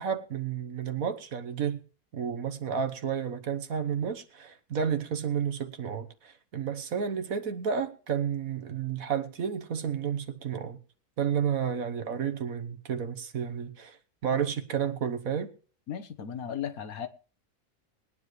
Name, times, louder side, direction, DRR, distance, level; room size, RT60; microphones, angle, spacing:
voice 1, 0.0-1.8 2.1-10.8 11.2-14.0 14.2-15.5, right 7 dB, 65° right, 1.6 m, -31 dB
voice 2, 15.9-17.1, left 8 dB, 70° left, 1.5 m, -35 dB
21.0 x 10.0 x 3.2 m
omnidirectional pair, 1.6 m